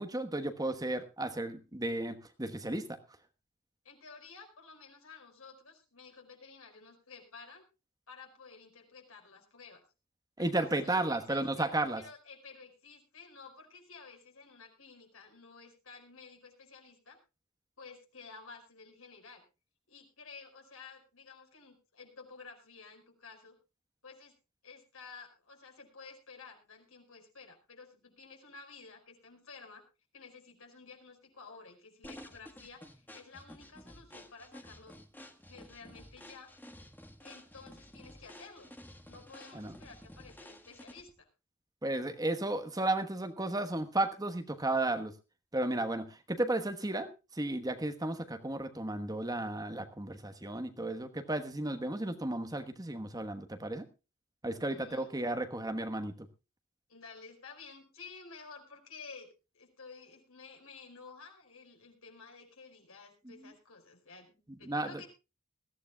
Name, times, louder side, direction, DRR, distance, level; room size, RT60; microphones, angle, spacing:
voice 1, 0.0-3.0 10.4-12.0 39.5-39.7 41.8-45.1 45.5-47.1 47.3-53.9 54.4-56.1 64.7-65.0, right 2 dB, 15° right, 7 dB, 1.2 m, -33 dB
voice 2, 3.8-7.6 8.1-9.8 10.4-11.7 11.9-17.2 17.8-19.4 19.9-23.6 24.0-24.3 24.6-29.8 30.1-34.9 35.5-36.5 37.2-38.7 39.1-41.3 54.6-55.1 56.9-59.3 59.5-65.1, left 4 dB, 75° left, 3 dB, 5.1 m, -52 dB
sound 1, 32.0-41.2, left 1 dB, 10° left, 1.5 m, -52 dB
21.0 x 15.0 x 2.3 m, 0.29 s
head